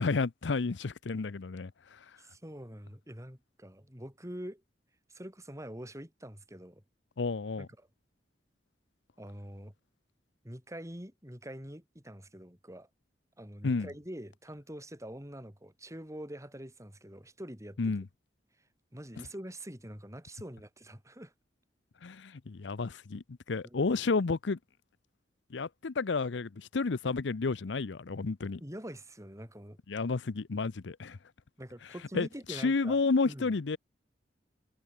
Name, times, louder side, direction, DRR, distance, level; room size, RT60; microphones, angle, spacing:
voice 1, 0.0-2.0 7.2-7.7 13.6-13.9 17.8-18.1 22.0-24.6 25.5-28.6 29.9-31.2 32.1-33.8, left 4 dB, 75° left, 0.6 m, -31 dB
voice 2, 2.2-4.6 5.1-6.8 7.6-7.7 9.2-9.7 10.4-12.9 13.4-17.8 18.9-21.3 23.6-23.8 28.6-29.8 31.6-33.0 33.2-33.5, equal, 15° right, 7.7 m, -45 dB
head